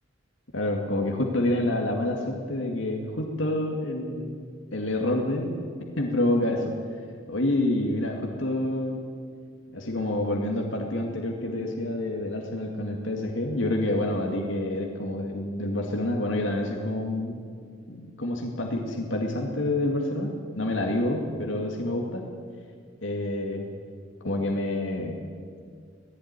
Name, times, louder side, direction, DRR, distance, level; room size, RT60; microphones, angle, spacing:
voice 1, 0.5-4.4 4.7-5.6 6.0-6.8 7.3-9.0 9.7-17.4 17.9-22.2 23.0-23.7 24.2-25.2, left 1 dB, 75° left, 0 dB, 2.3 m, -28 dB
18.0 x 15.5 x 9.8 m, 2.1 s
head